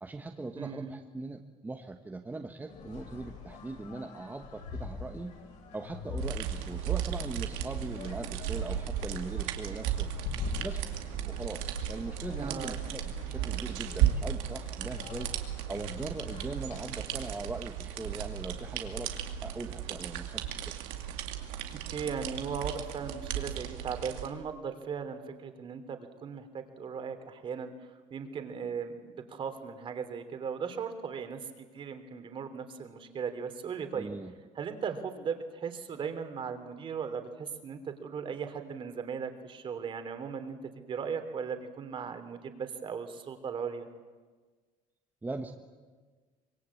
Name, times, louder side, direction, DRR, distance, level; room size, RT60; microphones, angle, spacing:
voice 1, 0.0-5.3 5.7-10.1 10.6-10.8 11.2-15.3 15.7-19.1 19.4-20.7 33.9-34.3 45.2-45.5, right 3 dB, 15° right, 4 dB, 1.3 m, -40 dB
voice 2, 0.5-0.9 12.4-12.8 21.9-27.7 28.1-29.0 29.3-34.1 34.5-43.9, right 6 dB, 40° right, 8 dB, 3.1 m, -37 dB
sound 1, 2.7-17.2, left 5 dB, 60° left, 6.6 m, -44 dB
sound 2, 6.2-24.3, right 11 dB, 90° right, 2.4 m, -35 dB
25.5 x 22.0 x 8.5 m, 1.4 s
cardioid pair, 125°, 14 cm